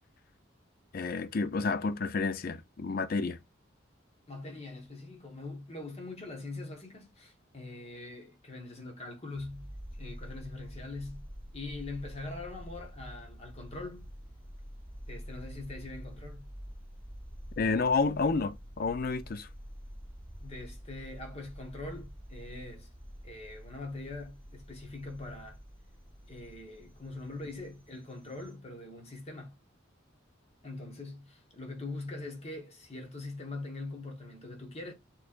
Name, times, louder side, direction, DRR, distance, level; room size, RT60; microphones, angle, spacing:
voice 1, 0.9-3.4 17.6-19.5, left 4 dB, 45° left, 0.4 m, -30 dB
voice 2, 4.3-9.7 10.0-11.2 11.5-14.1 15.1-16.5 20.4-22.9 23.2-25.6 26.3-29.5 30.6-34.9, left 2 dB, 30° left, 1.3 m, -42 dB
sound 1, 9.3-28.5, equal, 10° left, 1.3 m, -47 dB
6.4 x 3.2 x 2.5 m
head